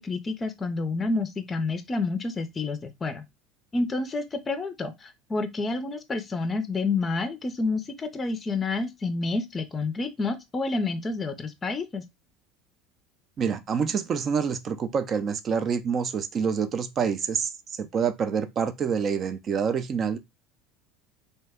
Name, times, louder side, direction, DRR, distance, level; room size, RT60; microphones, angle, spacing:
voice 1, 0.0-3.2 3.7-12.0, left 3 dB, 25° left, 0.5 m, -29 dB
voice 2, 13.4-20.2, right 6 dB, 40° right, 0.5 m, -27 dB
2.8 x 2.2 x 3.4 m
hypercardioid pair, 75°, 0 cm